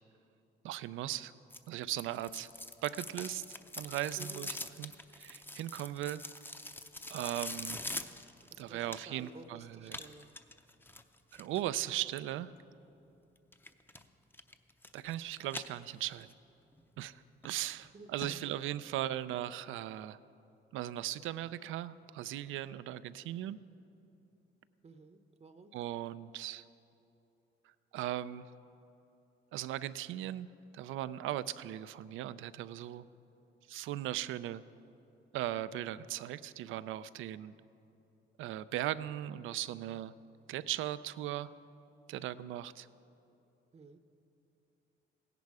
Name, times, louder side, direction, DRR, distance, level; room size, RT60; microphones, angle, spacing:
voice 1, 0.6-1.3 1.7-2.5 2.8-3.4 3.8-6.2 7.1-7.8 8.6-10.0 11.3-12.5 14.9-16.3 17.0-20.2 20.7-23.6 25.7-26.6 27.9-28.5 29.5-30.5 30.7-33.0 33.7-34.6 35.3-37.5 38.4-40.1 40.5-41.5 42.1-42.9, right 13 dB, 85° right, 15 dB, 0.5 m, -38 dB
sound 1, 1.5-9.3 9.9-11.6 13.5-14.0 14.3-15.2 15.5-16.3 16.7-16.8 17.4-17.5 17.8-17.9 18.2-18.3 18.7-18.8, left 2 dB, 10° left, 0.6 m, -44 dB
voice 2, 4.2-4.5 8.5-10.3 17.9-18.6 24.8-25.7 43.7-44.0, right 3 dB, 35° right, 8 dB, 0.8 m, -53 dB
16.5 x 10.5 x 4.8 m, 2.8 s
cardioid pair, 90°, 20 cm